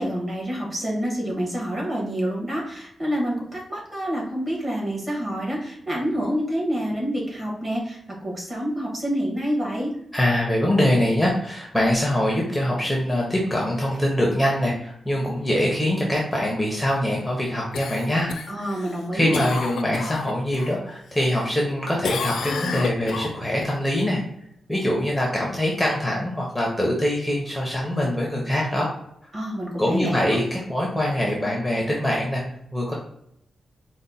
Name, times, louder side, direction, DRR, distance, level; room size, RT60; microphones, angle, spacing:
voice 1, 0.0-9.9 18.5-19.5 29.3-30.4, equal, 25° right, -3 dB, 1.3 m, -27 dB
voice 2, 10.1-18.9 19.1-24.2 24.7-28.9 29.2-29.3 29.8-32.4 32.7-32.9, left 1 dB, 5° left, -2 dB, 0.6 m, -23 dB
Cough, 17.7-20.7 21.1-21.7 22.0-23.7 28.1-28.2, left 5 dB, 85° left, 0.4 m, -31 dB
4.1 x 2.1 x 3.9 m, 0.75 s
wide cardioid pair, 175°, 0 cm